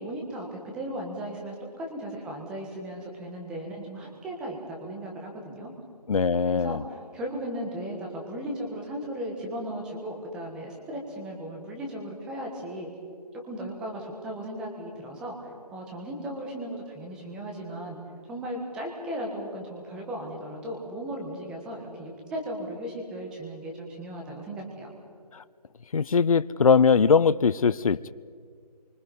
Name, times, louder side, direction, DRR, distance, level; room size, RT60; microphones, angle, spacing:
voice 1, 0.0-5.7 6.5-12.9 13.4-18.0 18.3-24.9, right 1 dB, 5° right, 0 dB, 1.4 m, -36 dB
voice 2, 6.1-6.8 25.3-25.4 25.9-28.1, left 5 dB, 60° left, 16 dB, 0.6 m, -21 dB
25.0 x 24.5 x 5.4 m, 2.1 s
hypercardioid pair, 175°, 21 cm